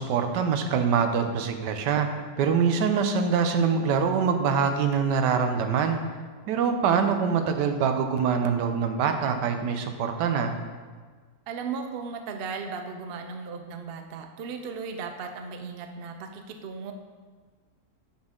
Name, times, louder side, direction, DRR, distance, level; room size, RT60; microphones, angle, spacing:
voice 1, 0.0-2.1 2.4-6.0 6.5-10.5, right 6 dB, 90° right, 7 dB, 1.3 m, -24 dB
voice 2, 11.5-16.9, right 5 dB, 70° right, 5 dB, 0.5 m, -36 dB
7.7 x 6.2 x 3.7 m, 1.5 s
omnidirectional pair, 1.8 m